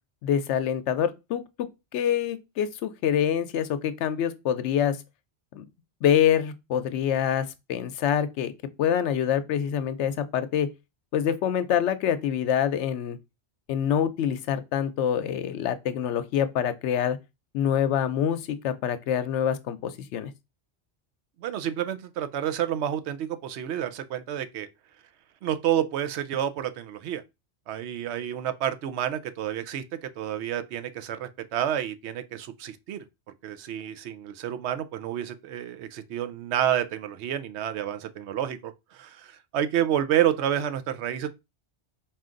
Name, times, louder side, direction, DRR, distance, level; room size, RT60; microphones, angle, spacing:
voice 1, 0.2-1.7 1.9-5.0 5.5-5.6 6.0-8.5 8.8-10.7 11.1-13.2 13.7-17.2 17.5-20.3, left 9 dB, 85° left, 0.9 m, -26 dB
voice 2, 21.4-24.7 25.4-27.2 27.7-33.0 33.4-41.3, right 10 dB, 75° right, 0.8 m, -29 dB
4.4 x 2.4 x 3.7 m
omnidirectional pair, 1.2 m